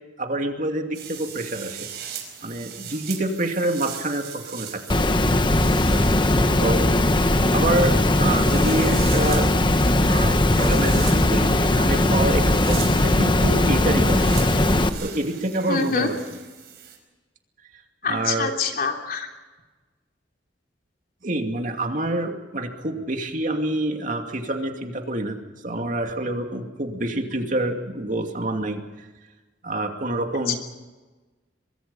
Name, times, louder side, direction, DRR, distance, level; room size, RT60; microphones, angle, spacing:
voice 1, 0.2-1.9 2.4-5.1 6.6-6.8 7.5-9.5 10.1-14.3 14.8-16.2 18.1-18.5 21.2-25.4 25.6-29.1 29.6-30.6, right 1 dB, 45° right, 4 dB, 2.5 m, -27 dB
sound 1, 0.9-17.0, right 9 dB, 60° right, 5.1 m, -39 dB
Water, 4.9-14.9, left 1 dB, 25° left, 1.2 m, -19 dB
voice 2, 15.7-16.1 18.0-19.3 30.5-30.6, left 5 dB, 55° left, 2 dB, 3.3 m, -25 dB
23.5 x 23.0 x 5.6 m, 1.2 s
head